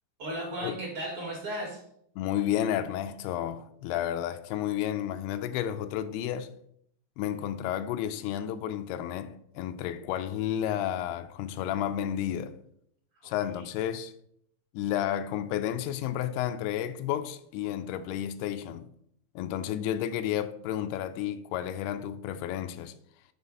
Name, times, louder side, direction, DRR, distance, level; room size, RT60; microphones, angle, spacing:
voice 1, 0.2-1.8 13.1-13.6, right 1 dB, 45° right, 2.1 m, -36 dB
voice 2, 2.2-6.5 7.2-12.6 13.2-14.1 14.7-18.9 19.4-22.9, left 11 dB, 90° left, 2.6 m, -31 dB
7.1 x 4.1 x 5.4 m
omnidirectional pair, 4.5 m